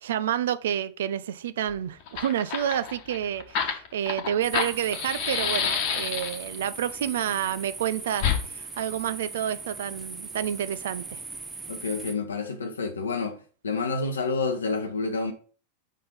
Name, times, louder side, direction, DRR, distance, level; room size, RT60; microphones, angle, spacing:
voice 1, 0.0-11.2, right 10 dB, 60° right, 0.5 m, -29 dB
Fire, 1.7-1.8 2.0-6.6 8.2-8.4, left 7 dB, 45° left, 1.1 m, -28 dB
sound 1, 4.4-12.1, right 3 dB, 15° right, 0.8 m, -40 dB
voice 2, 11.7-13.4 13.6-15.3, left 4 dB, 70° left, 0.8 m, -28 dB
5.4 x 3.8 x 5.3 m
figure-of-eight pair, 90°, 0 cm